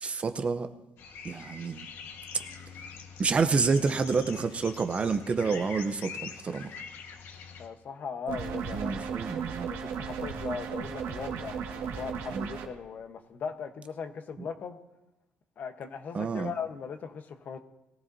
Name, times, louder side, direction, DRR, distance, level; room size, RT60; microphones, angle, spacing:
voice 1, 0.0-0.7 1.2-1.9 2.3-2.4 3.2-6.7 8.7-9.7 12.3-12.5 16.1-16.5, right 4 dB, 30° right, 9 dB, 0.7 m, -28 dB
sound 1, 1.0-7.7, left 6 dB, 70° left, 1.4 m, -44 dB
voice 2, 7.6-8.9 9.7-11.6 11.9-14.8 15.6-17.6, left 6 dB, 45° left, 7 dB, 1.1 m, -38 dB
sound 2, 8.3-12.7, right 6 dB, 85° right, 1.8 m, -35 dB
22.0 x 14.5 x 2.7 m, 0.95 s
cardioid pair, 140°, 4 cm